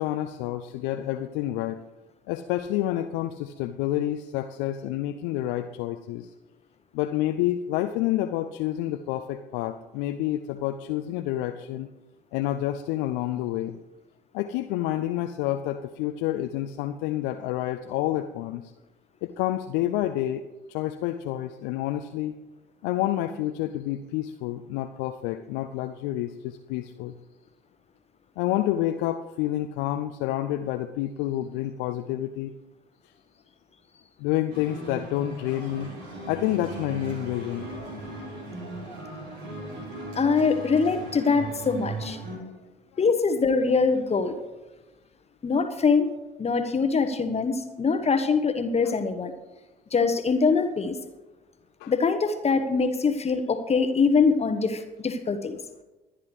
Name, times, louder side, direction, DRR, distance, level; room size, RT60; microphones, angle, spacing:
voice 1, 0.0-1.8 2.3-6.3 6.9-11.9 12.3-13.8 14.3-18.7 19.2-20.4 20.7-22.4 22.8-27.1 28.4-32.5 34.2-35.9 36.3-37.7 51.8-51.9, left 13 dB, 65° left, 6 dB, 0.6 m, -29 dB
sound 1, 34.5-42.4, right 2 dB, 70° right, 3.6 m, -38 dB
voice 2, 40.1-42.2 43.0-44.3 45.4-46.1 46.4-49.3 49.9-50.9 51.9-55.6, left 5 dB, 30° left, 8 dB, 1.1 m, -23 dB
22.5 x 9.8 x 3.2 m, 1.1 s
figure-of-eight pair, 50°, 21 cm